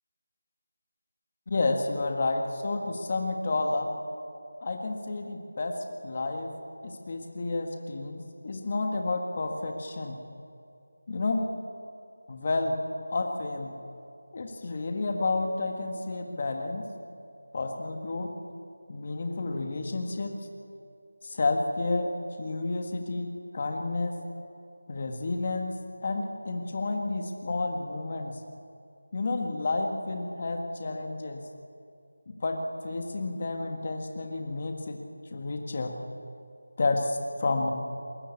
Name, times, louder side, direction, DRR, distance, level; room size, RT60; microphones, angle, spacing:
voice 1, 1.5-3.9 4.6-5.8 6.0-6.5 7.1-10.2 11.1-11.5 12.3-12.8 13.1-13.7 14.3-16.9 17.5-18.3 18.9-20.4 21.2-22.1 22.4-24.2 24.9-25.7 26.0-28.3 29.1-31.4 32.3-35.0 35.3-35.9 36.8-37.7, left 3 dB, 25° left, 4 dB, 1.5 m, -30 dB
21.5 x 19.0 x 8.4 m, 2.5 s
figure-of-eight pair, 180°, 0 cm